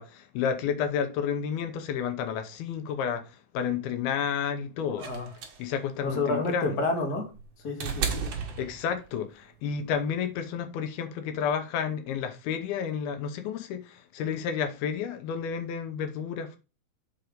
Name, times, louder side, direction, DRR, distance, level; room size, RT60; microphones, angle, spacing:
voice 1, 0.0-5.1 5.6-6.8 8.6-16.6, left 7 dB, 80° left, 2.9 m, -31 dB
sound 1, 5.0-9.3 10.5-10.6, right 6 dB, 50° right, 2.1 m, -35 dB
voice 2, 6.0-7.3 7.6-8.3, left 2 dB, 30° left, 1.9 m, -29 dB
7.4 x 5.2 x 5.1 m
omnidirectional pair, 4.3 m